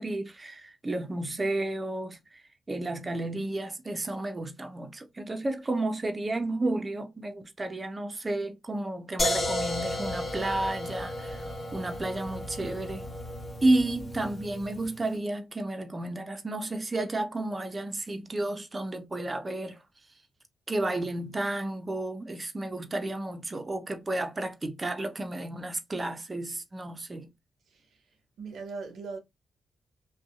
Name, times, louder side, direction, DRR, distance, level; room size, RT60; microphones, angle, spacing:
voice 1, 0.0-13.1 13.6-19.8 20.7-27.3, right 2 dB, 35° right, 0.6 m, -32 dB
sound 1, 9.2-15.0, left 1 dB, 40° left, 1.2 m, -33 dB
voice 2, 27.7-28.1 28.4-29.2, right 4 dB, 75° right, 0.6 m, -40 dB
2.6 x 2.2 x 2.4 m
supercardioid pair, 45°, 0 cm